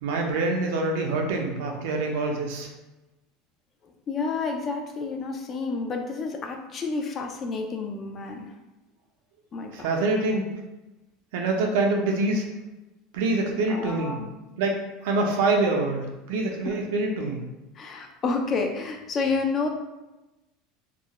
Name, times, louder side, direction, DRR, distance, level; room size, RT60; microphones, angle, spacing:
voice 1, 0.0-2.7 9.7-10.5 11.3-12.5 13.1-14.2 14.6-14.7 15.0-17.4, right 2 dB, 80° right, 2 dB, 0.5 m, -25 dB
voice 2, 4.1-8.5 9.5-9.7 13.7-14.3 16.6-16.7 17.8-19.7, left 4 dB, 30° left, 4 dB, 0.3 m, -29 dB
2.3 x 2.0 x 2.8 m, 1.0 s
supercardioid pair, 140°, 0 cm